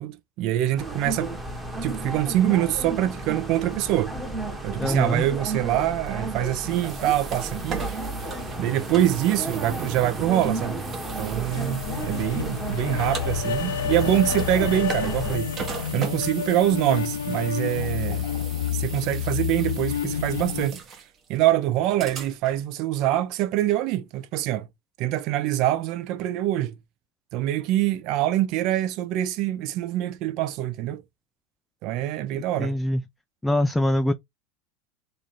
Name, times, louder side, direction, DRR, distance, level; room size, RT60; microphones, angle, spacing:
voice 1, 0.0-1.4 1.8-4.1 4.6-7.8 8.6-10.8 11.2-15.5 15.9-18.2 18.7-20.8 21.3-24.7 25.0-26.8 27.3-31.0 31.8-32.8, right 13 dB, 55° right, 0.6 m, -25 dB
sound 1, 0.8-15.4, right 2 dB, 10° right, 1.1 m, -33 dB
voice 2, 4.8-5.2 32.3-33.0 33.4-34.1, left 1 dB, 5° left, 0.3 m, -24 dB
sound 2, 5.9-22.7, right 5 dB, 35° right, 1.0 m, -40 dB
sound 3, 11.5-20.7, left 8 dB, 85° left, 0.4 m, -29 dB
3.2 x 2.5 x 3.9 m
hypercardioid pair, 110°, 0 cm